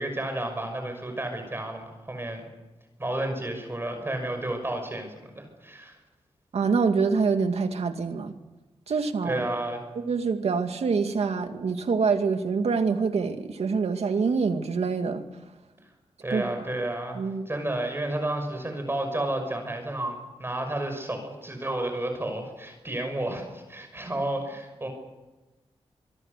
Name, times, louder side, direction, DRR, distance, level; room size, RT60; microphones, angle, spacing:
voice 1, 0.0-2.4 3.0-6.0 9.2-9.8 16.2-24.9, right 1 dB, 20° right, 5 dB, 5.9 m, -31 dB
voice 2, 6.5-8.3 8.9-9.4 10.0-15.2 16.3-16.5 17.1-17.5, right 5 dB, 70° right, 6 dB, 2.3 m, -25 dB
26.0 x 23.0 x 6.7 m, 1.1 s
wide cardioid pair, 100°, 11 cm